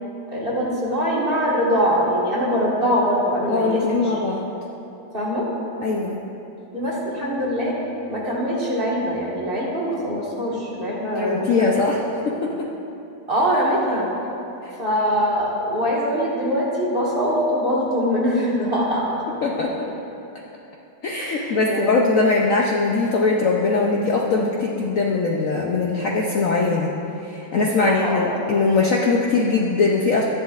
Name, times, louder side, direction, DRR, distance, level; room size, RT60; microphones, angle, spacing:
voice 1, 0.3-4.2 5.1-5.5 6.7-7.8 8.1-12.1 13.3-14.1 14.8-19.3 21.2-22.3 27.6-28.3, equal, 30° right, -6 dB, 1.7 m, -23 dB
voice 2, 3.5-4.5 5.8-6.2 11.1-12.0 12.2-12.5 14.6-14.7 19.4-19.9 21.0-26.9 27.2-30.3, left 3 dB, 65° left, -2 dB, 0.8 m, -21 dB
12.5 x 10.5 x 2.4 m, 2.9 s
omnidirectional pair, 2.0 m